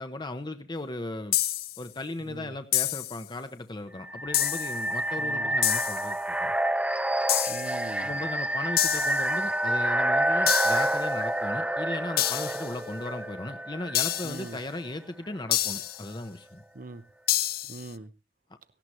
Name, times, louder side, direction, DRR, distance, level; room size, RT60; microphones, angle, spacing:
voice 1, 0.0-1.4 1.8-6.6 8.0-16.6, left 2 dB, 25° left, 8 dB, 0.9 m, -37 dB
sound 1, 1.3-1.8 2.7-3.2 4.3-4.8 5.6-6.1 7.3-7.8 8.8-9.3 10.5-11.0 12.2-12.7 13.9-14.5 15.5-16.1 17.3-17.9, left 13 dB, 55° left, 0.8 m, -28 dB
voice 2, 2.2-2.5 5.2-5.5 7.5-8.1 14.2-14.6 16.7-17.0 17.6-18.1, right 2 dB, 50° right, 12 dB, 0.9 m, -41 dB
sound 2, 4.0-14.8, right 1 dB, 5° right, 0.6 m, -28 dB
17.5 x 16.0 x 3.1 m, 0.31 s
head